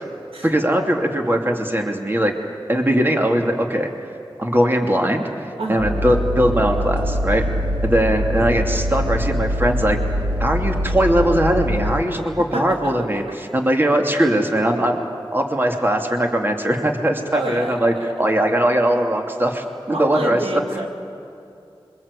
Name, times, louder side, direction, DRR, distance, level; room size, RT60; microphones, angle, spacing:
voice 1, 0.4-2.3 2.7-3.9 4.4-7.5 7.8-20.4 20.7-20.9, right 1 dB, 20° right, 2 dB, 2.7 m, -20 dB
sound 1, 5.8-12.0, equal, 65° right, 3.3 m, -23 dB
voice 2, 12.5-13.2 17.3-18.1 19.9-20.9, right 1 dB, 85° right, 1 dB, 2.7 m, -29 dB
26.5 x 24.0 x 8.3 m, 2.6 s
wide cardioid pair, 55°, 9 cm